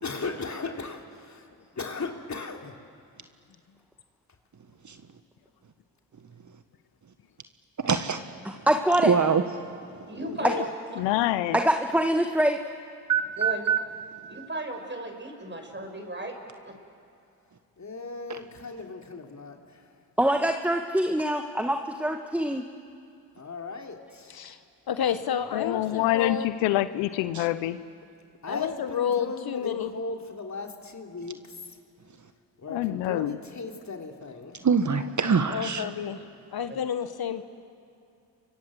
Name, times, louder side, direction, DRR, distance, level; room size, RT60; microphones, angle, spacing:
voice 1, 0.0-1.5 1.8-2.8 17.8-19.9 23.4-24.4 25.5-26.1 28.4-31.8 32.6-34.6, left 3 dB, 40° left, 2 dB, 3.4 m, -37 dB
voice 2, 7.8-8.2 9.0-9.4 13.1-13.8 18.3-18.4 27.3-27.4 34.6-35.8, right 6 dB, 40° right, 8 dB, 1.5 m, -24 dB
voice 3, 8.7-9.1 11.5-12.6 20.2-22.7, right 1 dB, 5° right, 5 dB, 1.6 m, -24 dB
voice 4, 10.1-10.7 11.5-11.6 13.4-13.7 14.3-16.4 16.6-16.8 36.7-36.8, right 2 dB, 25° right, 4 dB, 6.7 m, -35 dB
voice 5, 11.0-11.6 25.5-27.8 32.7-33.4, left 14 dB, 90° left, 14 dB, 0.8 m, -26 dB
voice 6, 24.9-26.5 28.5-29.9 35.5-36.2 36.5-37.4, left 8 dB, 55° left, 10 dB, 1.4 m, -30 dB
29.0 x 24.0 x 7.8 m, 2.5 s
supercardioid pair, 45°, 43 cm